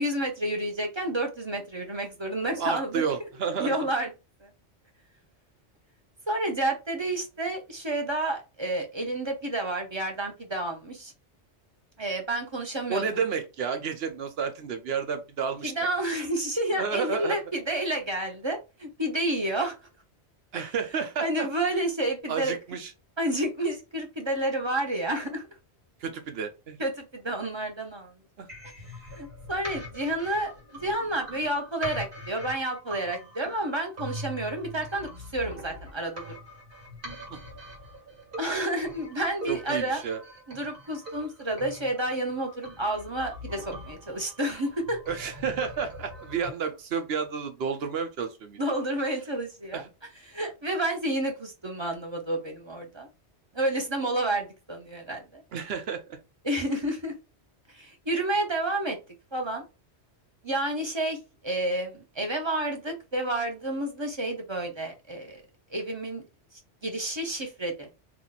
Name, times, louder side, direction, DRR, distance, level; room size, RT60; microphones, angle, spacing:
voice 1, 0.0-3.0 3.6-4.1 4.4-4.5 6.3-11.1 12.0-13.0 15.6-19.7 20.5-20.6 21.2-22.5 23.2-25.5 26.8-28.1 29.1-30.5 30.8-36.2 38.4-40.0 40.5-45.0 48.6-49.8 50.3-53.1 53.5-55.4 56.4-57.1 57.7-59.0 59.3-59.6 60.4-61.2 61.4-65.4 65.7-66.2 66.8-67.9, right 1 dB, 30° right, 0.8 m, -30 dB
voice 2, 2.6-3.8 12.9-15.7 16.7-17.4 20.5-21.5 22.3-22.9 26.0-26.8 28.4-28.5 37.3-37.4 39.5-40.2 45.1-48.6 49.7-49.8 55.5-56.2, right 6 dB, 65° right, 0.9 m, -31 dB
sound 1, 28.5-46.5, equal, 50° right, 1.6 m, -43 dB
2.9 x 2.5 x 3.9 m
omnidirectional pair, 1.2 m